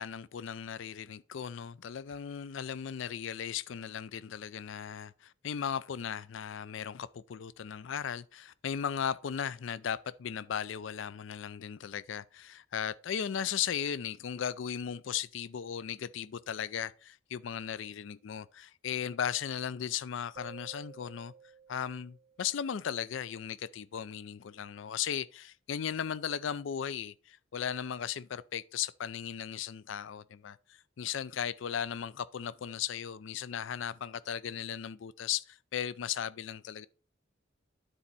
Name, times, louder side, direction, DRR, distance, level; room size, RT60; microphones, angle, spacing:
voice 1, 0.0-21.3 21.7-30.6 31.0-36.9, left 8 dB, 70° left, 0.4 m, -36 dB
sound 1, 20.4-23.0, right 6 dB, 45° right, 0.4 m, -54 dB
9.9 x 4.3 x 5.3 m
head